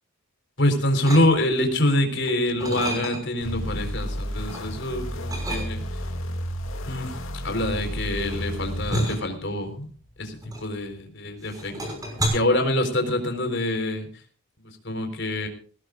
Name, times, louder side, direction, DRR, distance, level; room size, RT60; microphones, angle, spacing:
voice 1, 0.6-5.8 6.8-7.1 7.4-9.9 10.2-10.3 10.6-12.0 12.3-14.1 14.8-15.5, left 1 dB, 55° left, 5 dB, 4.1 m, -25 dB
sound 1, 1.0-1.7 2.2-3.5 3.9-4.7 5.3-6.1 6.9-11.1 11.4-12.3, right 1 dB, 15° right, 5.8 m, -31 dB
sound 2, 3.4-8.9, equal, 70° left, 2.2 m, -32 dB
21.5 x 18.0 x 2.5 m, 0.43 s
head